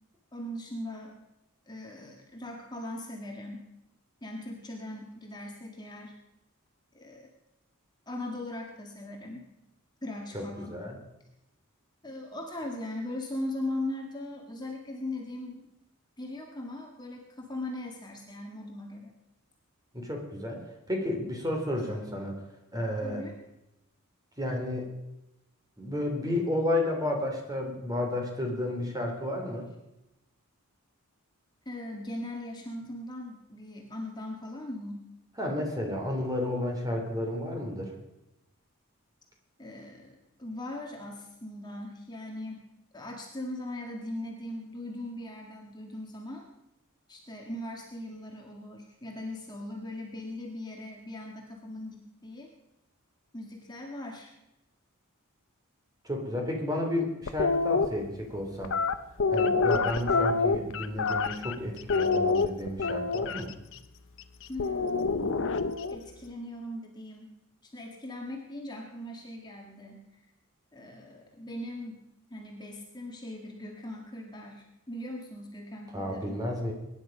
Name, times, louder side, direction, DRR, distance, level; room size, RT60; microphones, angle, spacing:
voice 1, 0.3-1.1 1.7-3.7 4.2-6.1 6.9-7.3 8.1-9.5 10.0-10.8 12.0-15.7 16.2-19.1 23.0-23.3 31.7-35.0 39.6-42.6 42.9-46.5 47.1-52.5 53.3-54.3 64.5-65.3 65.9-67.3 67.6-70.0 70.7-72.0 72.3-76.4, left 1 dB, 20° left, 0 dB, 1.9 m, -39 dB
voice 2, 19.9-22.4 22.7-23.2 24.4-24.9 25.8-29.7 35.4-37.9 56.0-58.7 59.3-63.5 75.9-76.7, left 1 dB, 15° right, 2 dB, 3.0 m, -32 dB
sound 1, 57.3-57.9 58.6-61.6 61.9-63.4 64.6-66.0, left 4 dB, 60° left, 0.8 m, -26 dB
23.0 x 10.5 x 5.2 m, 0.92 s
head